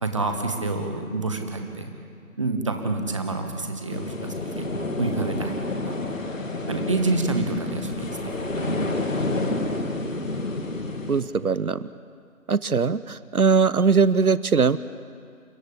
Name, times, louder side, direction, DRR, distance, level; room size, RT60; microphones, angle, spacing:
voice 1, 0.0-1.9 2.4-4.7 5.0-6.1 6.7-8.1 8.4-8.8, right 3 dB, 20° right, 5 dB, 1.4 m, -28 dB
sound 1, 3.9-11.2, left 2 dB, 60° left, 2.6 m, -29 dB
voice 2, 11.1-11.8 12.5-14.8, right 5 dB, 75° right, 16 dB, 0.9 m, -20 dB
29.5 x 14.5 x 8.6 m, 2.3 s
figure-of-eight pair, 160°, 44 cm